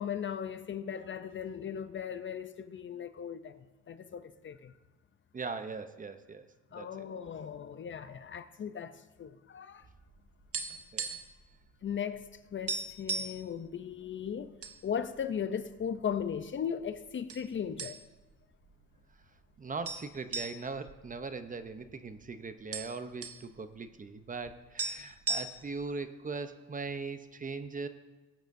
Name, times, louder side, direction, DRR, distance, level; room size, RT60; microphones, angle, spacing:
voice 1, 0.0-4.7 6.7-9.9 11.8-14.6 14.8-18.0, left 8 dB, 40° left, 0.6 m, -37 dB
voice 2, 5.3-6.9 10.9-11.1 19.6-27.9, right 4 dB, 25° right, 0.7 m, -40 dB
sound 1, 10.0-11.4 11.7-11.9 12.2-12.3 12.7-13.4 14.1-14.8 15.2-15.3 16.0-16.6 17.3-17.5 17.8-18.3 18.7-18.8 19.8-21.9 22.2-22.3 22.5-23.4 24.5-24.6 24.8-25.8, right 4 dB, 50° right, 1.0 m, -37 dB
18.5 x 8.9 x 2.6 m
cardioid pair, 90°, 30 cm